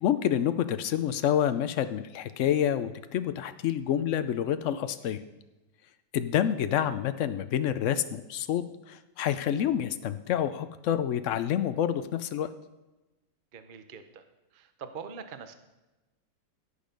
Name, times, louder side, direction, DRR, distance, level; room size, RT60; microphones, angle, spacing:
voice 1, 0.0-5.2 6.1-12.5, left 10 dB, 80° left, 11 dB, 0.6 m, -28 dB
voice 2, 13.5-14.2 14.5-15.5, right 6 dB, 45° right, 9 dB, 0.7 m, -43 dB
16.5 x 6.6 x 5.2 m, 1.1 s
omnidirectional pair, 2.0 m